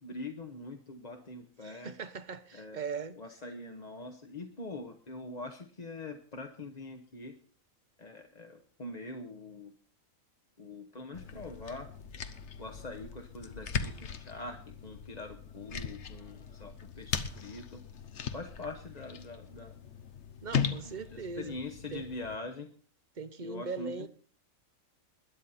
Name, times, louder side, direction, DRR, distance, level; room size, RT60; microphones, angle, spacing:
voice 1, 0.0-1.9 2.5-2.8 3.2-7.4 8.0-9.7 10.6-11.9 12.6-18.0 18.3-19.8 20.8-22.7 23.4-24.1, left 2 dB, 35° left, 1.1 m, -43 dB
voice 2, 1.6-3.2 20.4-21.6 21.9-22.1 23.2-24.1, right 5 dB, 40° right, 0.8 m, -39 dB
sound 1, 11.1-22.4, left 7 dB, 60° left, 1.2 m, -39 dB
21.0 x 9.4 x 4.2 m
omnidirectional pair, 1.4 m